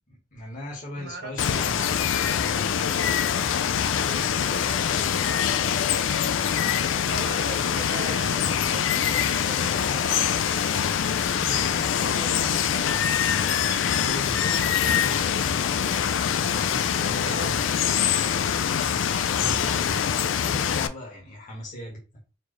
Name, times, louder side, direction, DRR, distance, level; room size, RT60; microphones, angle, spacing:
voice 1, 0.1-2.9 14.0-16.1 16.7-17.7 18.8-22.0, equal, 40° left, -4 dB, 1.5 m, -39 dB
voice 2, 1.0-1.3 3.9-5.4 7.0-13.0 17.2-17.6, right 3 dB, 55° right, 6 dB, 0.8 m, -40 dB
Water, 1.4-20.9, left 8 dB, 80° left, 0.4 m, -24 dB
4.3 x 2.9 x 3.2 m, 0.31 s
head